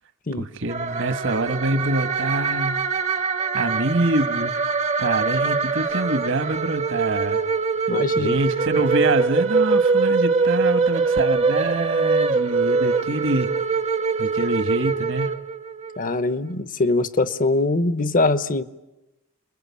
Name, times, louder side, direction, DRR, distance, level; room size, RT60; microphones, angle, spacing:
voice 1, 0.4-2.8 3.5-4.7 5.0-7.4 8.2-13.5 14.2-15.3, right 2 dB, 65° right, 1.5 m, -25 dB
sound 1, 0.7-16.0, right 4 dB, 35° right, 0.9 m, -23 dB
voice 2, 7.9-8.4 16.0-18.6, left 2 dB, 40° left, 0.9 m, -22 dB
30.0 x 21.5 x 8.5 m
head